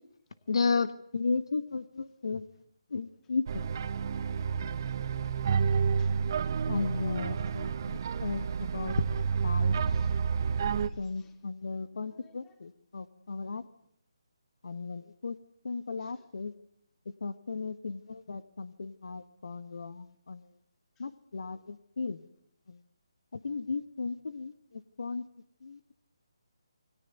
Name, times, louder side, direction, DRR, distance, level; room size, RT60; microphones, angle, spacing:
voice 1, 0.5-2.4 2.9-3.7 6.7-8.9 9.4-9.8 11.0-13.6 14.6-15.4 15.6-16.5 17.2-20.4 21.0-22.2 23.4-24.5 25.0-25.2 25.6-25.9, left 4 dB, 65° left, 13 dB, 1.5 m, -34 dB
sound 1, 3.5-10.9, right 6 dB, 45° right, 1.8 m, -30 dB
voice 2, 9.8-11.4 11.9-12.6 16.0-16.3 21.0-21.1, left 7 dB, 15° left, 6 dB, 3.7 m, -65 dB
28.5 x 21.5 x 9.4 m, 0.72 s
figure-of-eight pair, 155°, 3 cm